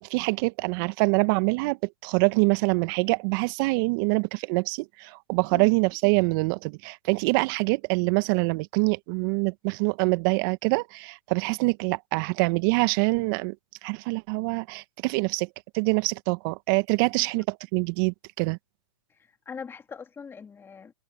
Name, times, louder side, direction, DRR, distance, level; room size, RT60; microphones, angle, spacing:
voice 1, 0.0-13.5 13.8-15.5 15.7-18.6, right 29 dB, 45° right, 1.6 m, -25 dB
voice 2, 19.2-20.9, left 6 dB, 15° left, 2.9 m, -42 dB
open air
hypercardioid pair, 115°, 15 cm